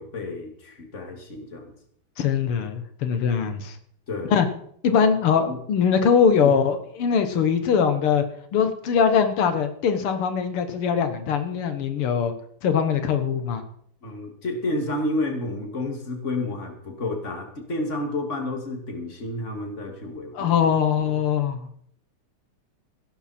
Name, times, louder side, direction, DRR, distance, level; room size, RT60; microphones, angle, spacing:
voice 1, 0.0-1.7 4.1-4.3 5.5-5.6 6.4-6.6 14.0-20.5, left 2 dB, 35° left, 4 dB, 2.6 m, -30 dB
voice 2, 2.2-3.8 4.3-4.5 4.8-8.2 8.5-12.3 12.6-13.6 20.4-21.7, left 7 dB, 85° left, 9 dB, 2.1 m, -22 dB
16.0 x 12.5 x 4.4 m, 0.65 s
omnidirectional pair, 2.4 m